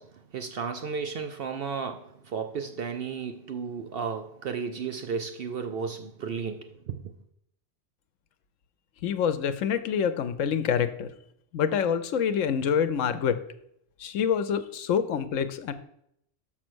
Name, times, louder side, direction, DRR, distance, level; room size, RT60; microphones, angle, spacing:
voice 1, 0.0-7.0, right 6 dB, 60° right, 0.7 m, -34 dB
voice 2, 9.0-11.1 11.5-13.4 14.0-15.7, left 7 dB, 90° left, 1.1 m, -26 dB
6.3 x 6.1 x 6.1 m
omnidirectional pair, 1.3 m